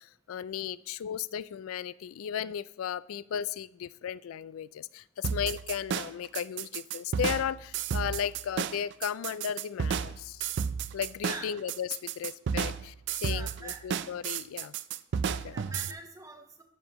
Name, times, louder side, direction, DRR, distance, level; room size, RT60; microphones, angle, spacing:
voice 1, 0.0-10.4 10.9-12.9 13.2-14.7 15.3-15.6, left 8 dB, 85° left, 19 dB, 0.3 m, -35 dB
sound 1, 5.2-15.9, right 7 dB, 60° right, 0.4 m, -32 dB
voice 2, 11.2-11.6 13.2-13.8 15.5-16.6, right 2 dB, 15° right, 5 dB, 1.0 m, -44 dB
12.5 x 7.2 x 3.0 m, 0.77 s
head